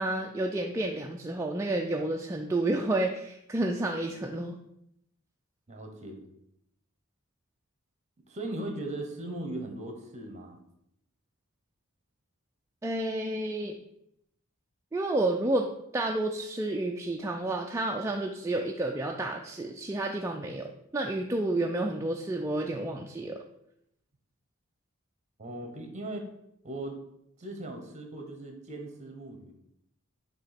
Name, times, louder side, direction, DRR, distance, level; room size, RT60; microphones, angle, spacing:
voice 1, 0.0-4.6 12.8-13.8 14.9-15.7 15.9-23.4, right 2 dB, 15° right, 1 dB, 0.4 m, -30 dB
voice 2, 5.7-6.2 8.3-10.6 25.4-26.2 26.6-27.0 27.4-29.5, right 1 dB, 35° right, 4 dB, 1.1 m, -38 dB
6.9 x 2.9 x 5.8 m, 0.77 s
head